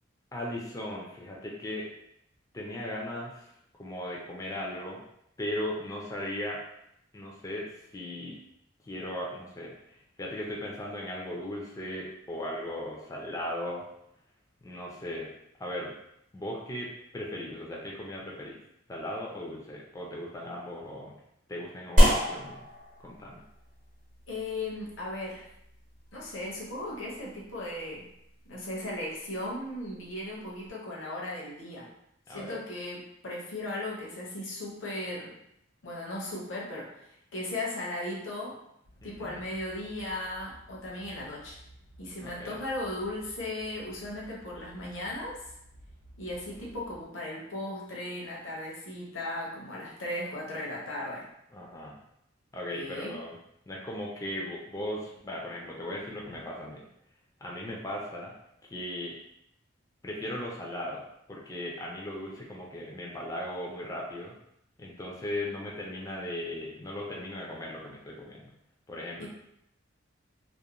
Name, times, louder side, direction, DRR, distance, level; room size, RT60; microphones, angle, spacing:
voice 1, 0.3-1.9 2.5-3.5 3.8-5.0 5.4-6.6 7.1-8.4 8.8-13.8 14.6-15.3 15.6-15.9 16.3-18.6 18.9-21.2 21.5-22.6 23.0-23.4 32.3-32.6 39.0-39.4 42.2-42.6 51.5-52.0 52.5-53.4 53.7-56.8 57.4-58.3 58.7-59.2 60.0-61.0 61.3-64.4 64.8-68.5 68.9-69.3, left 1 dB, 15° left, -3 dB, 0.3 m, -37 dB
sound 1, 22.0-30.7, equal, 45° right, 0.7 m, -30 dB
voice 2, 24.3-25.5 26.1-28.0 28.5-31.9 32.3-35.3 35.8-37.0 37.3-38.6 39.0-41.6 42.0-45.4 46.2-51.3 52.7-53.2 69.2-69.3, left 1 dB, 75° left, -4 dB, 0.6 m, -37 dB
sound 2, 38.8-47.1, equal, 80° right, 0.7 m, -54 dB
2.4 x 2.0 x 2.9 m, 0.78 s
head